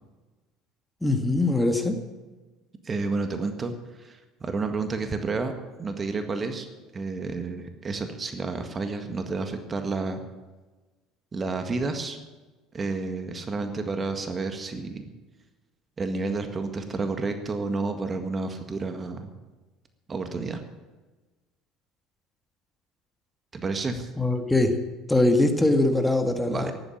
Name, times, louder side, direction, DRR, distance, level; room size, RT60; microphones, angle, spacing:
voice 1, 1.0-2.0 24.2-24.8 25.1-26.7, left 2 dB, 10° left, 5 dB, 1.9 m, -22 dB
voice 2, 2.8-5.5 5.8-6.7 6.9-10.2 11.3-12.2 12.7-15.1 16.0-19.3 20.1-20.6 23.5-24.1 26.5-26.7, right 3 dB, 30° right, 7 dB, 1.8 m, -30 dB
14.0 x 11.5 x 7.3 m, 1.2 s
hypercardioid pair, 65°, 0 cm